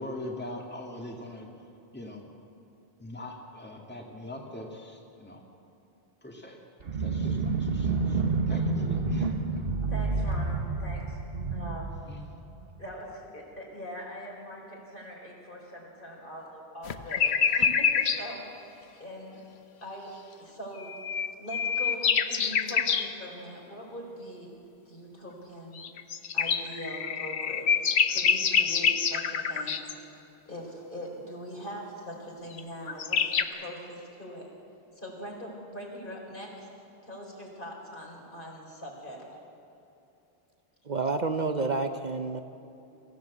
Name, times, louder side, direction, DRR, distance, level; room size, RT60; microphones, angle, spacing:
voice 1, 0.0-1.5 1.9-2.3 3.0-5.4 6.2-6.6 6.9-8.2 8.5-9.7 12.1-12.2, left 1 dB, 10° left, 0 dB, 2.0 m, -42 dB
sound 1, 6.8-12.8, right 3 dB, 65° right, 1.4 m, -29 dB
voice 2, 9.9-11.2 11.5-11.9 12.8-18.5 19.0-19.4 19.8-21.0 21.4-24.5 24.9-25.9 26.3-27.8 28.1-34.5 34.9-36.7 37.0-39.2, equal, 55° left, -2 dB, 4.7 m, -42 dB
sound 2, 16.9-18.2 20.8-23.1 25.8-29.9 32.6-32.7 32.9-33.4, left 7 dB, 85° left, 1.2 m, -26 dB
voice 3, 40.9-42.4, right 3 dB, 45° right, 7 dB, 0.8 m, -29 dB
24.0 x 15.0 x 8.1 m, 2.9 s
omnidirectional pair, 1.1 m